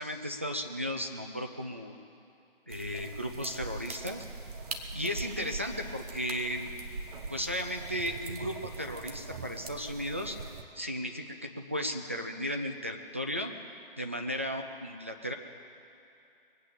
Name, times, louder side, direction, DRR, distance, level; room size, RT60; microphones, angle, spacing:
voice 1, 0.0-2.0 2.7-4.2 4.9-6.7 7.3-10.4 10.8-13.5 14.0-15.3, equal, 15° right, 2 dB, 0.3 m, -35 dB
sound 1, 2.7-10.6, right 3 dB, 40° right, 1.3 m, -42 dB
22.0 x 8.7 x 7.1 m, 2.6 s
figure-of-eight pair, 145°, 29 cm